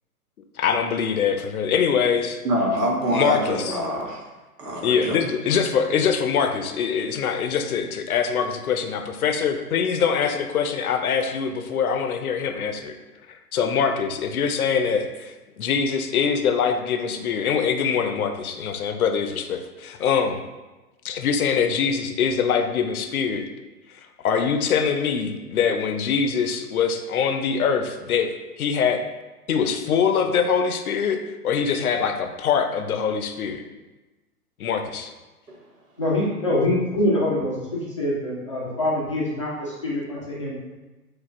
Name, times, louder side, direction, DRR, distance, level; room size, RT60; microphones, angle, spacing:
voice 1, 0.6-2.4 3.1-3.8 4.8-13.0 13.3-20.4 21.0-23.4 23.9-29.0 29.5-31.2 31.4-33.6 34.6-35.1, left 6 dB, 65° left, 6 dB, 0.6 m, -23 dB
voice 2, 2.4-4.2 4.6-5.2 35.5-35.6, equal, 85° right, 0 dB, 1.1 m, -25 dB
voice 3, 36.0-40.5, left 1 dB, 20° left, -8 dB, 0.3 m, -24 dB
6.3 x 2.3 x 2.5 m, 1.1 s
hypercardioid pair, 130°, 47 cm